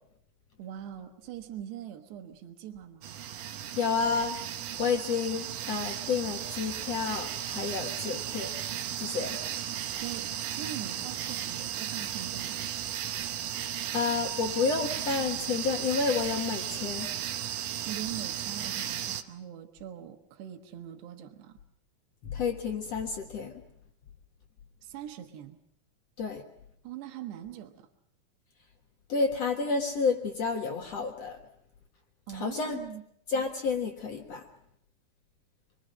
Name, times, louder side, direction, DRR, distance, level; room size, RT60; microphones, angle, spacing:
voice 1, 0.6-3.2 9.9-10.3 10.6-12.6 17.9-21.6 24.8-25.6 26.8-27.9 32.3-33.0, right 11 dB, 85° right, 5 dB, 3.5 m, -42 dB
sound 1, 3.0-19.2, right 10 dB, 70° right, 2.3 m, -35 dB
voice 2, 3.8-4.4 4.8-8.6 9.0-9.4 13.9-17.1 22.2-23.5 26.2-26.4 29.1-31.4 32.3-32.8 33.3-34.4, left 5 dB, 55° left, 2 dB, 1.9 m, -30 dB
26.0 x 22.5 x 6.3 m, 0.72 s
omnidirectional pair, 4.7 m